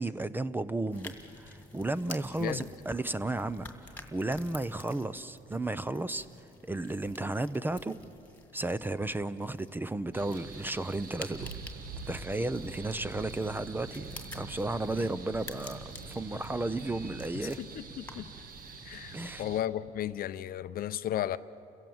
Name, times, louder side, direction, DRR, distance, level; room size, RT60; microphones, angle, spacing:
voice 1, 0.0-6.3 6.6-8.0 8.5-11.5 12.1-17.6 19.1-19.4, right 2 dB, 10° right, 0.6 m, -33 dB
sound 1, 0.9-18.4, left 2 dB, 10° left, 2.2 m, -50 dB
sound 2, 10.1-19.6, right 4 dB, 55° right, 1.6 m, -47 dB
sound 3, 11.3-17.3, right 3 dB, 75° right, 1.5 m, -46 dB
voice 2, 17.3-18.3 18.8-21.4, left 12 dB, 60° left, 0.6 m, -34 dB
29.5 x 16.5 x 7.8 m
cardioid pair, 110°, 17 cm